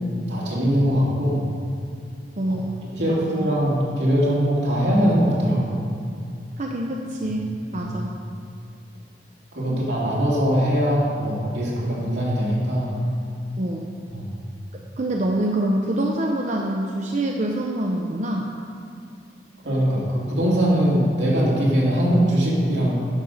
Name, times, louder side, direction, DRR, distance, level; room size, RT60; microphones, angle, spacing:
voice 1, 0.3-1.4 2.5-2.6 2.9-5.8 7.8-7.9 9.5-12.9 14.1-14.3 19.6-23.0, equal, 80° right, -6 dB, 2.7 m, -21 dB
voice 2, 2.4-2.8 3.1-3.5 6.6-8.1 9.7-9.8 13.6-13.9 15.0-18.5, right 1 dB, 40° right, 0 dB, 0.6 m, -25 dB
10.5 x 5.2 x 6.5 m, 2.4 s
head